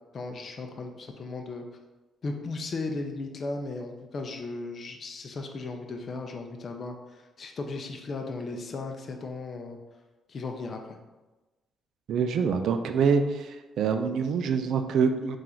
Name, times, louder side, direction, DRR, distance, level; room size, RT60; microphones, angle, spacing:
voice 1, 0.1-1.6 2.2-9.8 10.3-11.0, left 3 dB, 45° left, 3 dB, 0.5 m, -36 dB
voice 2, 12.1-15.4, right 6 dB, 75° right, 8 dB, 0.4 m, -25 dB
3.8 x 2.5 x 4.3 m, 1.1 s
cardioid pair, 90°, 0 cm